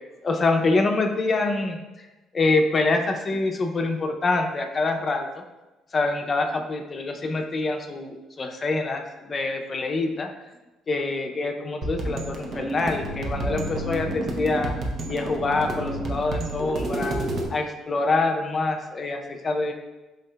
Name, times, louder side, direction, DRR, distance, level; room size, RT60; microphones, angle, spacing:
voice 1, 0.2-2.1 2.3-5.4 5.9-10.3 10.9-14.7 15.1-17.1 17.5-19.7, left 3 dB, 40° left, 3 dB, 0.5 m, -25 dB
sound 1, 11.8-17.5, right 1 dB, 50° right, 0.6 m, -30 dB
5.1 x 2.7 x 2.2 m, 1.1 s
hypercardioid pair, 50°, 0 cm